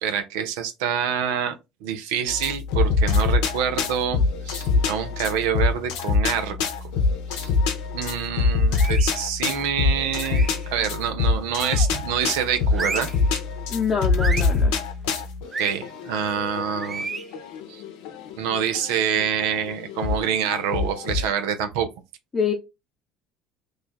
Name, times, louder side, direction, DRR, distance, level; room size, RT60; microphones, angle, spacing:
voice 1, 0.0-4.2 4.4-6.9 7.3-7.5 7.9-13.1 15.6-17.1 17.7-17.8 18.4-21.9, right 8 dB, 80° right, 0.5 m, -26 dB
sound 1, 2.3-21.3, left 4 dB, 75° left, 0.7 m, -25 dB
sound 2, 8.7-9.2 10.2-10.7 11.5-12.0 12.7-13.2 14.2-14.6 15.5-15.8 16.8-17.3, right 4 dB, 30° right, 0.5 m, -31 dB
voice 2, 13.7-14.8 22.3-22.5, left 6 dB, 30° left, 0.9 m, -25 dB
3.2 x 2.2 x 4.2 m
hypercardioid pair, 75°, 0 cm